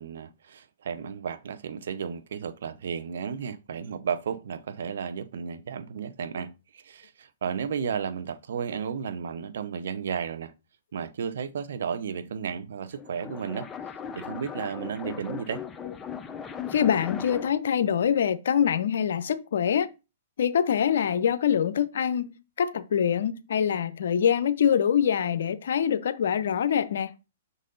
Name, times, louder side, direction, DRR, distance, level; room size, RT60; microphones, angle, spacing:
voice 1, 0.0-10.5 10.9-13.7 14.2-15.6, right 7 dB, 70° right, 0.7 m, -33 dB
sound 1, 12.8-17.7, left 7 dB, 15° left, 0.6 m, -38 dB
voice 2, 16.7-19.9 20.4-27.1, left 8 dB, 70° left, 0.6 m, -24 dB
6.3 x 4.0 x 3.8 m
hypercardioid pair, 130°, 0 cm